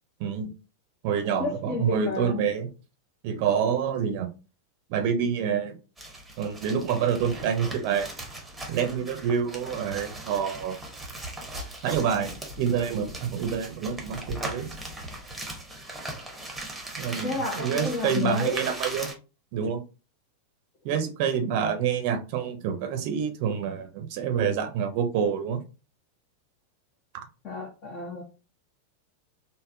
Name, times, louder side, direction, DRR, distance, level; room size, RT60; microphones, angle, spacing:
voice 1, 0.2-0.5 1.0-2.7 3.2-4.3 4.9-5.8 6.4-8.1 8.7-10.8 11.8-14.7 17.0-19.1 19.5-19.8 20.8-25.6 27.1-27.3, right 7 dB, 45° right, 0.6 m, -27 dB
voice 2, 1.4-2.4 17.2-18.6 27.4-28.2, left 3 dB, 35° left, 0.7 m, -31 dB
sound 1, 6.0-19.1, right 1 dB, 5° right, 0.8 m, -39 dB
3.4 x 2.0 x 2.5 m
figure-of-eight pair, 90°, 0 cm